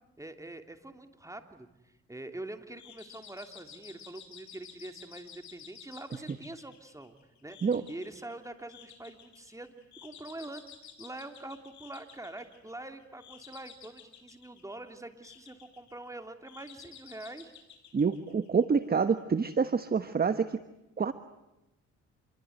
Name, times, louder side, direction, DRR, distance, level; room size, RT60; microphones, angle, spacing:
voice 1, 0.2-7.2 7.4-7.6 7.9-10.6 11.0-17.5, right 2 dB, 10° right, 6 dB, 3.0 m, -44 dB
sound 1, 2.8-18.9, left 7 dB, 65° left, 7.6 m, -53 dB
voice 2, 17.9-20.6 21.0-21.1, right 5 dB, 30° right, 10 dB, 1.2 m, -27 dB
28.0 x 23.0 x 9.4 m, 0.93 s
cardioid pair, 90°, 30 cm